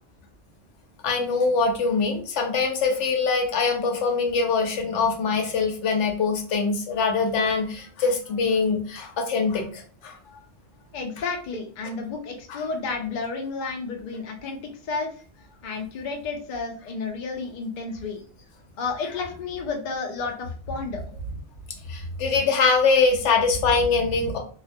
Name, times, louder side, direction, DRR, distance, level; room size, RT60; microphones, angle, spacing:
voice 1, 1.0-10.1 12.5-12.6 21.9-24.4, left 4 dB, 85° left, 3 dB, 0.9 m, -23 dB
voice 2, 10.9-15.2 15.6-18.2 18.8-21.1, left 4 dB, 55° left, 2 dB, 0.6 m, -31 dB
2.3 x 2.1 x 2.6 m, 0.42 s
omnidirectional pair, 1.2 m